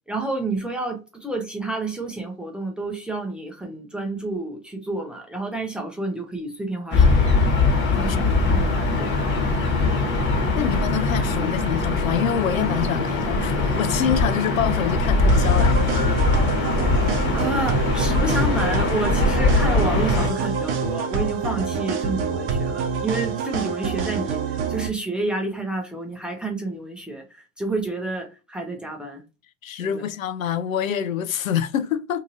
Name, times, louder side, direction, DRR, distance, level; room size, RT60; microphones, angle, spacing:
voice 1, 0.1-7.4 8.0-9.1 9.4-9.8 17.3-29.2 29.8-30.0, right 2 dB, ahead, 0.5 m, -29 dB
Gull seagull / Ocean, 6.9-20.3, left 3 dB, 30° left, 1.2 m, -21 dB
voice 2, 7.9-8.6 10.6-15.9 29.6-32.2, left 9 dB, 90° left, 0.5 m, -26 dB
sound 1, 15.3-24.9, right 5 dB, 45° right, 0.7 m, -26 dB
2.7 x 2.6 x 2.6 m
hypercardioid pair, 105°, 40 cm